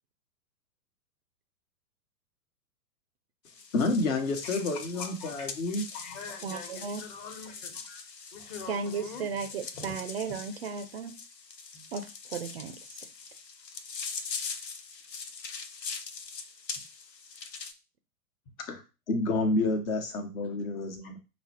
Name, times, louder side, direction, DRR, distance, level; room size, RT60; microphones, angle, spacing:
sound 1, 3.5-17.7, left 5 dB, 80° left, 0.7 m, -42 dB
voice 1, 3.7-5.8 18.7-18.8 19.1-21.2, left 2 dB, 55° left, 5 dB, 1.1 m, -29 dB
voice 2, 4.4-8.0 8.3-9.3 9.7-10.0 10.2-10.4 11.7-11.8 20.5-20.6 21.0-21.1, left 5 dB, 35° left, 4 dB, 1.2 m, -45 dB
voice 3, 6.4-7.0 8.7-11.1 11.9-13.0 20.5-20.6, right 5 dB, 40° right, 7 dB, 0.4 m, -35 dB
5.8 x 2.1 x 2.9 m, 0.30 s
figure-of-eight pair, 105°, 49 cm